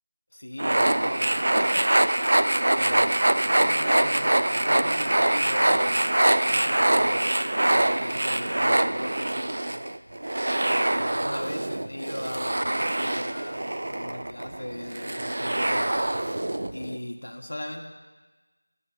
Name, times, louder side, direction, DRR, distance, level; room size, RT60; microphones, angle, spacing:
voice 1, 0.3-2.0 2.7-3.1 3.4-6.0 6.5-9.8 10.6-15.9 16.7-17.8, left 1 dB, 60° left, 3 dB, 1.6 m, -39 dB
sound 1, 0.6-17.0, right 1 dB, 55° right, 0.6 m, -24 dB
11.0 x 7.5 x 8.6 m, 1.2 s
figure-of-eight pair, 175°, 0 cm